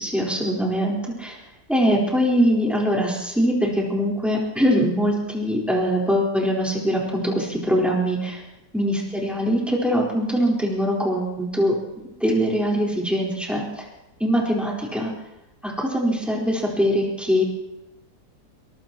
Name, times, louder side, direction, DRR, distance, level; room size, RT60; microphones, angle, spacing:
voice 1, 0.0-1.4 1.7-8.4 8.7-11.7 12.2-13.8 14.2-15.1 15.6-17.4, equal, ahead, -3 dB, 4.3 m, -22 dB
22.5 x 21.0 x 3.1 m, 0.94 s
omnidirectional pair, 1.7 m